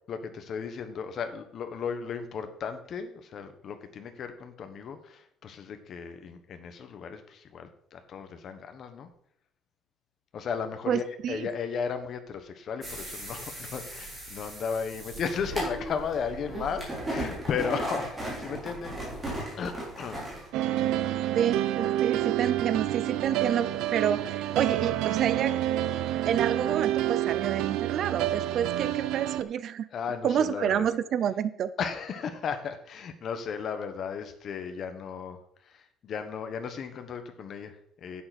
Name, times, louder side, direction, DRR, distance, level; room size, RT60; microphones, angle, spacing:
voice 1, 0.1-9.1 10.3-19.3 19.6-20.2 29.9-30.9 31.8-38.2, left 6 dB, 40° left, 8 dB, 1.3 m, -35 dB
voice 2, 10.9-11.5 21.3-25.6 26.2-29.9 30.2-31.7, right 9 dB, 45° right, 15 dB, 0.5 m, -29 dB
sound 1, 12.8-20.5, right 1 dB, 15° right, 4.1 m, -36 dB
sound 2, 20.5-29.4, right 13 dB, 85° right, 0.7 m, -28 dB
11.0 x 9.3 x 4.3 m, 0.69 s
cardioid pair, 175°, 0 cm